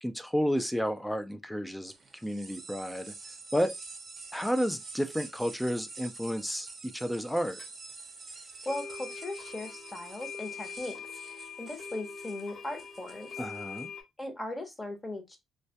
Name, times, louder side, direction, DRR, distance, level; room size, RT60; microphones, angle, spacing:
voice 1, 0.0-1.9 2.2-3.1 3.5-3.7 4.3-7.6 13.4-13.9, equal, 5° left, 0.3 m, -31 dB
sound 1, 1.9-13.9, right 3 dB, 40° right, 0.6 m, -47 dB
sound 2, 7.6-7.7 8.6-14.0, left 6 dB, 60° left, 0.9 m, -43 dB
voice 2, 8.6-11.0 11.3-13.3 14.2-15.4, left 1 dB, 20° left, 0.8 m, -38 dB
2.2 x 2.1 x 2.7 m
cardioid pair, 90°, 0 cm